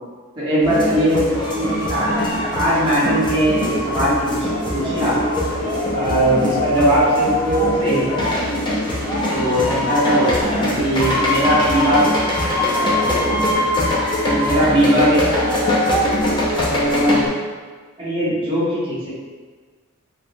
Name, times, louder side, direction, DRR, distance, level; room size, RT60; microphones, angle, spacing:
voice 1, 0.4-1.2 1.5-5.1 5.9-8.4 9.3-12.0 12.9-13.6 14.3-15.4 16.5-17.2 18.0-19.1, right 1 dB, 20° right, -11 dB, 1.0 m, -20 dB
sound 1, 0.6-17.3, left 1 dB, 20° left, 0.4 m, -21 dB
3.0 x 2.3 x 2.5 m, 1.5 s
head